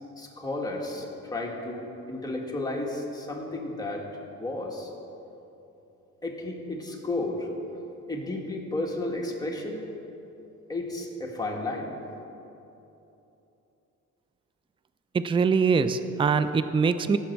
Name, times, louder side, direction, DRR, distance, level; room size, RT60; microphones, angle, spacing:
voice 1, 0.2-4.1 4.4-4.9 6.2-7.5 8.1-9.8 10.7-12.0, left 2 dB, 15° left, -1 dB, 1.9 m, -33 dB
voice 2, 15.1-17.2, right 5 dB, 15° right, 11 dB, 0.4 m, -23 dB
16.5 x 7.1 x 4.6 m, 3.0 s
cardioid pair, 90°, 30 cm